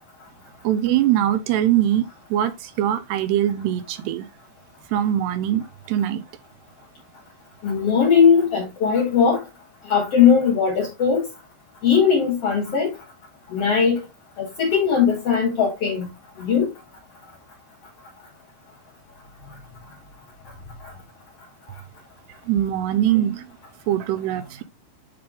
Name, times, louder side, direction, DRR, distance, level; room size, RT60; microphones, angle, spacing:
voice 1, 0.6-4.3 4.9-6.2 22.5-23.5 23.9-24.6, right 11 dB, 80° right, 2.7 m, -22 dB
voice 2, 7.6-9.4 9.9-11.3 11.8-12.9 13.5-14.0 14.4-16.1 16.4-16.7, left 6 dB, 85° left, 1.3 m, -19 dB
9.7 x 3.5 x 3.6 m
omnidirectional pair, 5.1 m